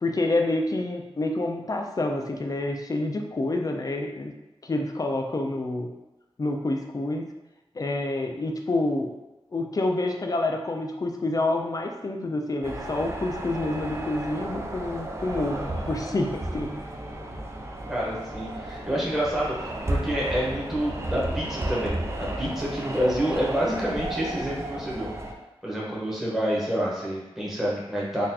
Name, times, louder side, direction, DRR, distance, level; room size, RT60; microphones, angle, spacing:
voice 1, 0.0-4.3 4.6-5.9 6.4-7.3 7.7-9.1 9.5-16.7, left 2 dB, 35° left, 3 dB, 0.4 m, -28 dB
sound 1, 12.6-25.3, right 1 dB, 25° right, 0.4 m, -33 dB
voice 2, 17.9-25.1 25.6-28.3, equal, 5° right, -6 dB, 1.0 m, -28 dB
3.9 x 2.5 x 2.8 m, 1.0 s
wide cardioid pair, 95°, 10 cm